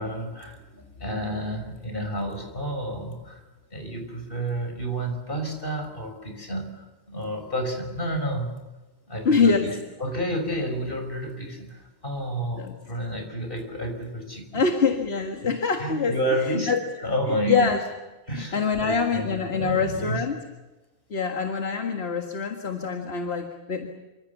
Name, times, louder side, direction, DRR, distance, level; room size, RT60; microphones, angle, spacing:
voice 1, 0.0-3.4 3.7-8.6 9.1-9.7 10.0-14.6 15.4-15.5 15.8-16.7 17.0-17.7 18.3-20.2, equal, 55° left, 4 dB, 5.9 m, -30 dB
voice 2, 9.3-9.7 12.5-12.7 14.5-16.2 16.5-16.8 17.5-17.8 18.3-20.4 21.1-23.9, left 5 dB, 70° left, 4 dB, 2.0 m, -24 dB
27.5 x 25.5 x 7.1 m, 1.1 s
omnidirectional pair, 1.1 m